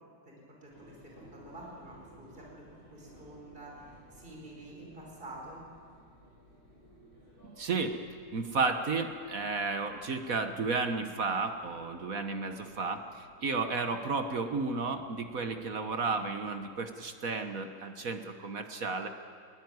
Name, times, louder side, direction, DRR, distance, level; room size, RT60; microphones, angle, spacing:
voice 1, 0.2-2.6 2.9-5.7, right 1 dB, 25° right, -2 dB, 5.0 m, -48 dB
sound 1, 0.7-16.7, equal, 45° left, 7.7 m, -58 dB
voice 2, 7.4-8.0 8.3-19.1, right 4 dB, 50° right, 7 dB, 1.3 m, -33 dB
21.5 x 17.5 x 9.5 m, 2.2 s
omnidirectional pair, 2.3 m